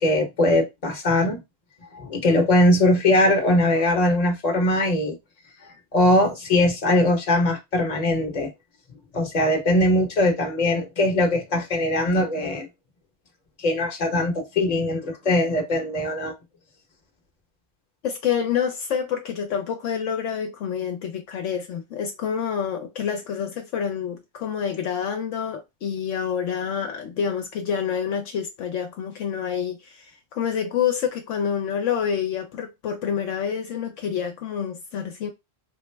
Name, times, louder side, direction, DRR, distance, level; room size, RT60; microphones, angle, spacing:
voice 1, 0.0-1.4 1.9-5.2 5.9-8.5 9.1-12.7 13.6-16.3, left 1 dB, 35° left, 1.0 m, -21 dB
voice 2, 18.0-35.3, left 8 dB, 70° left, 0.9 m, -27 dB
3.8 x 2.0 x 3.2 m
omnidirectional pair, 1.3 m